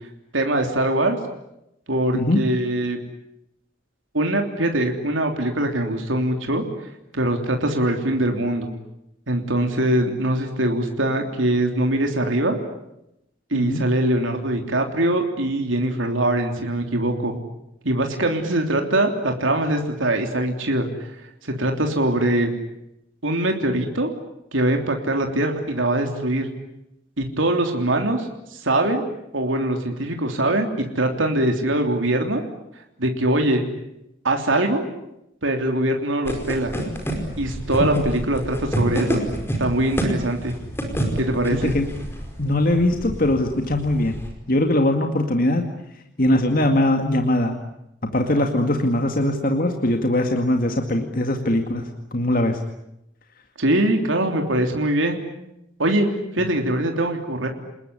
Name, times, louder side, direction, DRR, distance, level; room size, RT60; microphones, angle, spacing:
voice 1, 0.3-1.2 1.9-3.0 4.1-6.6 7.1-8.7 9.3-12.6 13.5-17.4 17.8-20.9 21.4-22.5 23.2-24.1 24.5-26.5 27.2-29.0 29.3-32.4 33.0-33.6 34.2-34.8 35.4-36.7 37.4-39.2 39.6-40.6 41.2-41.7 53.6-55.2 55.8-56.1 56.3-57.5, right 1 dB, 85° right, 3 dB, 3.3 m, -22 dB
voice 2, 13.5-13.8 37.8-38.0 41.5-41.9 42.4-44.2 44.5-45.6 46.2-47.6 48.0-51.8 52.1-52.6, left 1 dB, 45° left, 4 dB, 2.2 m, -21 dB
sound 1, 36.2-44.3, right 1 dB, 10° left, 4.9 m, -29 dB
29.0 x 20.5 x 9.9 m, 0.85 s
head